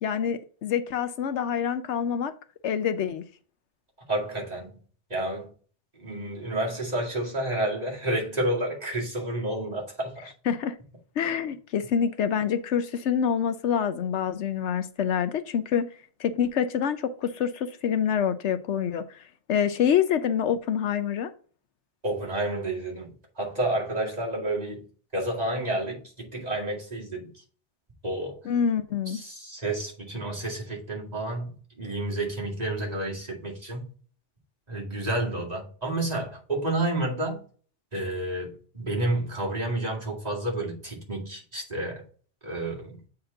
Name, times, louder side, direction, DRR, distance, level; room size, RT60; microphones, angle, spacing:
voice 1, 0.0-2.3 2.6-3.2 10.5-10.7 11.2-15.9 16.2-19.0 19.5-21.3 28.5-29.2, left 8 dB, 75° left, 0.9 m, -26 dB
voice 2, 4.1-4.8 5.1-5.5 5.9-10.3 22.0-24.9 25.1-27.4 28.0-28.4 29.1-33.9 34.7-37.4 37.9-42.0 42.4-43.0, right 1 dB, 35° right, 2.2 m, -30 dB
7.8 x 4.3 x 3.8 m
omnidirectional pair, 1.2 m